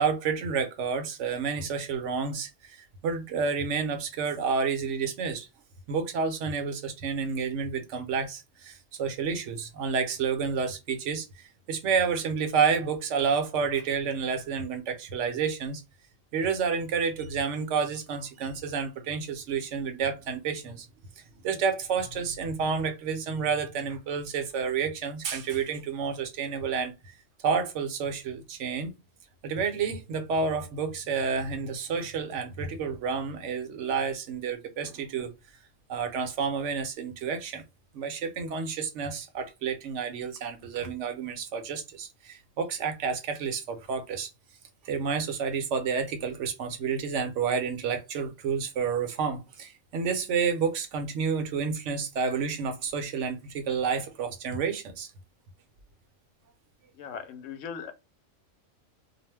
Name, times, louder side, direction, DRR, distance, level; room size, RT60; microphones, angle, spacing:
voice 1, 0.0-5.5 5.9-15.8 16.3-20.9 21.2-27.1 27.4-28.9 29.4-35.3 35.9-37.6 37.9-44.3 44.8-55.1, right 6 dB, 75° right, 1.0 m, -30 dB
voice 2, 56.9-57.9, left 6 dB, 80° left, 0.9 m, -39 dB
2.4 x 2.1 x 3.2 m
omnidirectional pair, 1.3 m